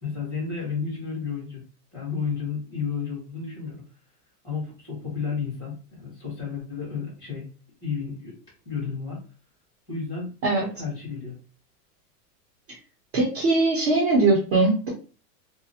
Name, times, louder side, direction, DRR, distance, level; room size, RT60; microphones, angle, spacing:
voice 1, 0.0-1.6 1.9-3.8 4.4-7.5 7.8-8.4 8.6-9.2 9.9-11.4, left 5 dB, 10° right, -7 dB, 0.8 m, -32 dB
voice 2, 13.1-14.9, right 2 dB, 40° right, -3 dB, 0.8 m, -21 dB
2.5 x 2.2 x 2.6 m, 0.36 s
supercardioid pair, 180°, 47 cm